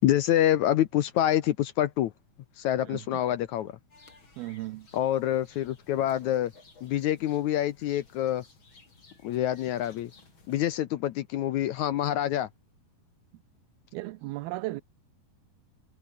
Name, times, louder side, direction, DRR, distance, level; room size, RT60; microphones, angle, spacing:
voice 1, 0.0-2.1 2.6-3.8 4.9-6.5 6.8-8.4 9.2-10.1 10.5-12.5, left 12 dB, 70° left, 1.9 m, -26 dB
sound 1, 3.9-10.8, left 3 dB, 35° left, 5.5 m, -57 dB
voice 2, 4.4-4.9 13.9-14.8, right 18 dB, 90° right, 2.7 m, -35 dB
omnidirectional pair, 4.2 m